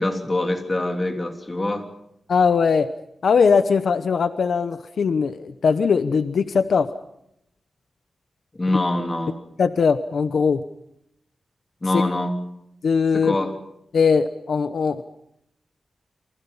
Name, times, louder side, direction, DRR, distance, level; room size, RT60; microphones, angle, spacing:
voice 1, 0.0-1.9 8.5-9.4 11.8-12.3 13.1-13.6, left 2 dB, 20° left, 3 dB, 3.4 m, -24 dB
voice 2, 2.3-2.9 3.2-6.9 9.6-10.6 11.9-12.0 12.8-13.4 13.9-15.0, left 5 dB, 70° left, 10 dB, 1.0 m, -20 dB
29.5 x 25.0 x 5.7 m, 0.78 s
wide cardioid pair, 175°, 0 cm